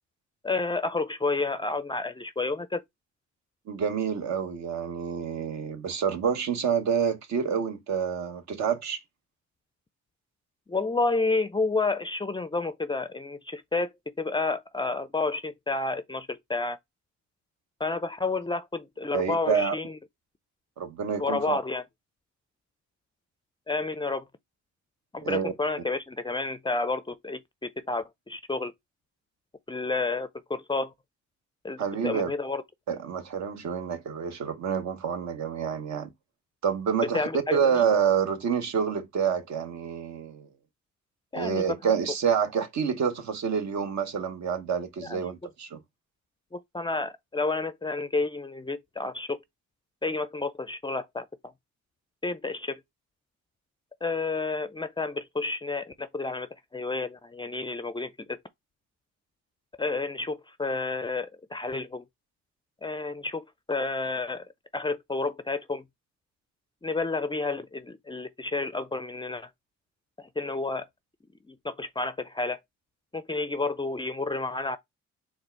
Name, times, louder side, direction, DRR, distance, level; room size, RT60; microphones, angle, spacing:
voice 1, 0.4-2.8 10.7-16.8 17.8-20.0 21.2-21.8 23.7-24.3 25.1-28.7 29.7-30.9 31.6-32.6 37.1-37.8 41.3-41.6 45.0-45.2 46.5-49.4 50.0-51.5 52.2-52.8 54.0-58.4 59.8-62.0 62.8-64.5 64.7-65.8 66.8-69.5 70.2-70.9 71.5-72.6 73.1-74.8, left 3 dB, 15° left, 0.4 m, -30 dB
voice 2, 3.7-9.0 19.1-19.7 20.8-21.6 25.2-25.5 31.8-32.3 32.9-36.1 36.6-40.5 41.3-45.8, right 7 dB, 65° right, 0.9 m, -28 dB
4.2 x 2.4 x 4.4 m
cardioid pair, 90°, 30 cm